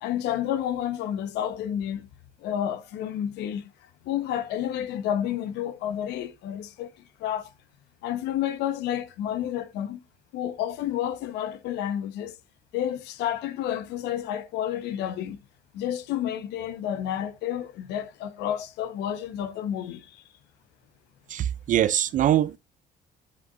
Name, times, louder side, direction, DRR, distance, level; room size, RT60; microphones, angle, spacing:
voice 1, 0.0-2.0 2.4-3.7 4.0-6.9 7.2-7.5 8.0-10.0 10.3-12.4 12.7-15.4 15.7-20.2, left 10 dB, 85° left, 1.0 m, -30 dB
voice 2, 21.3-22.6, right 11 dB, 50° right, 0.4 m, -23 dB
8.3 x 5.3 x 2.5 m
cardioid pair, 110°, 17 cm